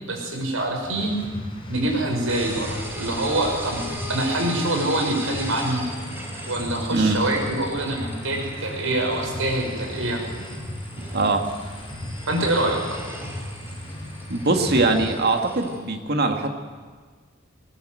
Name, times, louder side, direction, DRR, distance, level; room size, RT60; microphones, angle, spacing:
voice 1, 0.1-1.2 1.7-3.8 4.1-5.8 6.5-10.2 12.3-13.0, right 1 dB, 80° right, 2 dB, 5.9 m, -25 dB
sound 1, 0.8-15.1, left 1 dB, 25° left, 4.7 m, -36 dB
sound 2, 2.3-15.8, equal, 10° right, 4.0 m, -38 dB
voice 2, 11.1-11.5 14.3-16.5, right 2 dB, 55° right, 4 dB, 2.2 m, -21 dB
20.0 x 20.0 x 7.9 m, 1.5 s
head